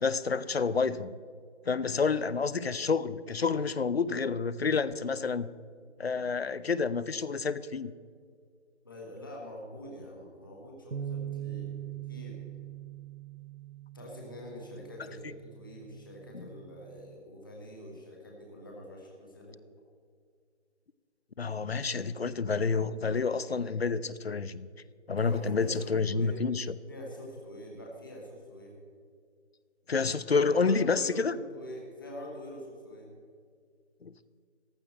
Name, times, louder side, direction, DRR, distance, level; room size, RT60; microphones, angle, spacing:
voice 1, 0.0-1.1 1.7-5.5 6.0-7.9 15.2-15.3 16.3-16.5 21.4-24.7 25.1-26.7 29.9-31.4 34.0-34.1, left 5 dB, 60° left, 17 dB, 0.6 m, -29 dB
voice 2, 8.8-11.7 12.1-12.4 13.9-19.6 25.1-26.4 26.9-28.8 30.4-33.1, equal, 20° left, -2 dB, 1.3 m, -45 dB
sound 1, 10.9-17.2, right 10 dB, 75° right, 1.0 m, -42 dB
14.5 x 11.5 x 4.4 m, 2.1 s
figure-of-eight pair, 175°, 35 cm